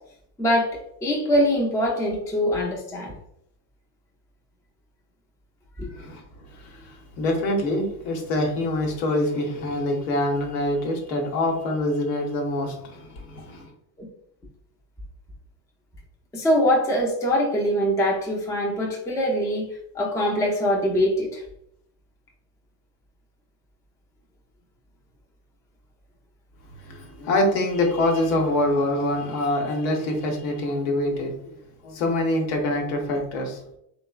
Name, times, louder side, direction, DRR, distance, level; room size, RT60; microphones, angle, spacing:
voice 1, 0.4-3.1 5.8-5.9 14.0-14.1 16.3-21.4, equal, 5° left, -1 dB, 0.4 m, -23 dB
voice 2, 6.5-13.7 26.8-31.6 31.8-33.6, left 1 dB, 75° left, 2 dB, 0.9 m, -25 dB
3.0 x 2.0 x 2.3 m, 0.74 s
supercardioid pair, 95°, 48 cm